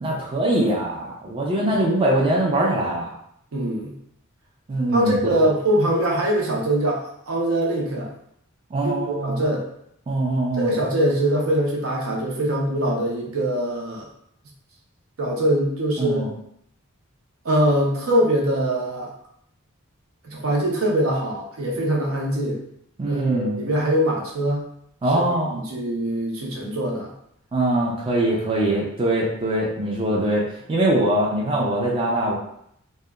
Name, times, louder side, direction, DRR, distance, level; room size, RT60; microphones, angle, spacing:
voice 1, 0.0-3.2 4.7-5.3 8.7-9.4 10.1-10.7 16.0-16.3 23.0-23.6 25.0-25.6 27.5-32.3, right 1 dB, 25° right, -3 dB, 0.3 m, -22 dB
voice 2, 3.5-3.9 4.9-7.0 7.3-8.1 8.8-9.6 10.6-14.1 15.2-16.2 17.4-19.1 20.2-22.6 23.0-24.6 25.1-25.2 25.5-27.1, right 1 dB, 75° right, -2 dB, 0.6 m, -23 dB
2.7 x 2.1 x 2.2 m, 0.73 s
head